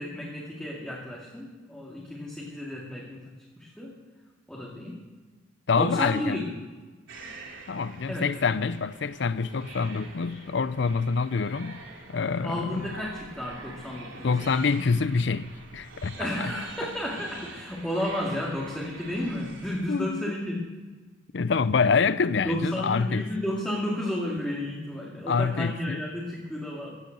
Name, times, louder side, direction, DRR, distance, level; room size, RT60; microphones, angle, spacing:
voice 1, 0.0-3.3 3.6-4.0 4.5-5.0 5.8-6.6 8.1-8.3 12.4-14.3 14.6-14.7 16.1-20.7 22.4-27.0, left 1 dB, 5° left, 2.3 m, -32 dB
voice 2, 5.7-6.4 7.7-11.8 12.1-13.0 14.2-16.5 19.9-20.3 21.3-23.3 25.3-26.0, left 5 dB, 60° left, 0.5 m, -26 dB
sound 1, 7.1-19.8, right 3 dB, 85° right, 3.0 m, -45 dB
16.0 x 9.4 x 7.7 m
head